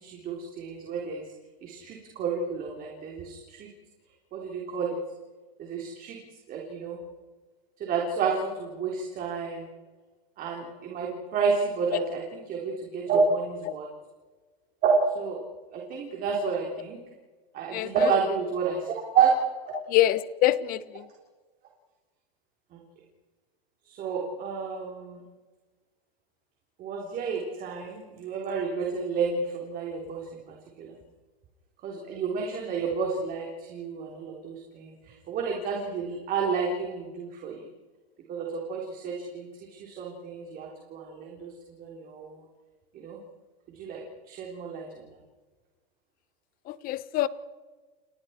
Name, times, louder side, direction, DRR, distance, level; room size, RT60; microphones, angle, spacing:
voice 1, 0.0-1.2 1.6-3.7 4.3-5.0 5.6-6.2 6.5-7.0 7.8-9.7 10.4-13.9 14.8-15.4 15.7-17.0 17.5-19.3 19.7-19.8 22.7-22.8 23.9-25.2 26.8-30.2 30.8-30.9 31.8-37.7 38.3-39.5 39.8-42.4 42.9-43.2 43.8-44.0 44.3-45.0, right 5 dB, 30° right, -1 dB, 3.7 m, -30 dB
voice 2, 17.7-18.1 19.9-21.1 46.7-47.3, left 14 dB, 30° left, 15 dB, 1.1 m, -25 dB
30.0 x 29.5 x 4.5 m, 1.3 s
supercardioid pair, 160°, 30 cm